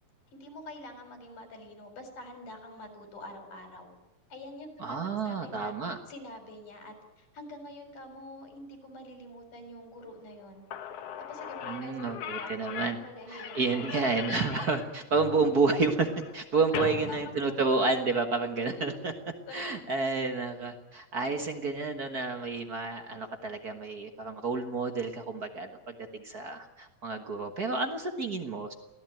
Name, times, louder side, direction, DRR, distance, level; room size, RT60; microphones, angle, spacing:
voice 1, 0.3-3.9 4.3-5.0 5.2-5.7 6.1-10.7 11.2-12.6 12.9-14.1 16.5-17.7 18.7-19.2 19.5-19.9, left 1 dB, 75° left, 6 dB, 5.5 m, -46 dB
voice 2, 4.8-6.0 11.7-13.0 13.3-19.1 19.5-28.7, right 3 dB, 45° right, 6 dB, 1.2 m, -30 dB
Slam / Squeak, 10.4-10.5 10.7-18.2, left 8 dB, 60° left, 1.9 m, -40 dB
24.0 x 16.5 x 9.1 m, 1.0 s
omnidirectional pair, 3.7 m